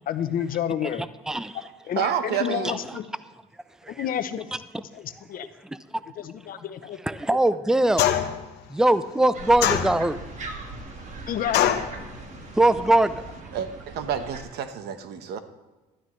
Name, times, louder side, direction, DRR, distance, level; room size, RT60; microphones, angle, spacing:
voice 1, 0.1-1.1 1.9-3.1 3.9-4.5 4.9-5.5 6.2-7.0 11.3-11.7, left 10 dB, 55° left, 11 dB, 0.8 m, -29 dB
voice 2, 0.8-1.6 2.6-3.0 3.8-4.0 4.7-4.8 5.6-6.3 7.0-8.1 8.7-10.2 12.5-13.3, right 1 dB, 5° right, 14 dB, 0.5 m, -23 dB
voice 3, 2.0-2.8 13.5-15.4, right 8 dB, 75° right, 9 dB, 1.1 m, -29 dB
sound 1, 8.0-8.5 9.6-10.3 11.5-11.9, left 11 dB, 85° left, 1.0 m, -23 dB
sound 2, 9.3-14.4, right 3 dB, 45° right, 1.7 m, -39 dB
15.5 x 12.5 x 3.2 m, 1.2 s
cardioid pair, 110°, 17 cm